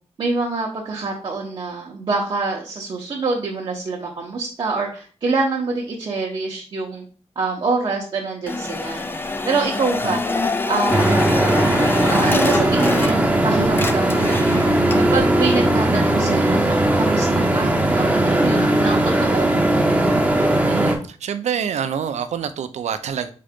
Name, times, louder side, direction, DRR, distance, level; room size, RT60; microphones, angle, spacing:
voice 1, 0.2-7.0 7.4-10.2 10.7-11.0 12.1-14.8 15.1-19.5, right 3 dB, 45° right, 0.7 m, -26 dB
sound 1, 8.5-13.4 13.7-15.2, left 3 dB, 20° left, 0.3 m, -25 dB
sound 2, 10.9-21.0, right 1 dB, 10° right, 0.7 m, -18 dB
voice 2, 20.6-23.3, right 8 dB, 90° right, 0.5 m, -26 dB
3.8 x 3.7 x 3.5 m
wide cardioid pair, 170°, 11 cm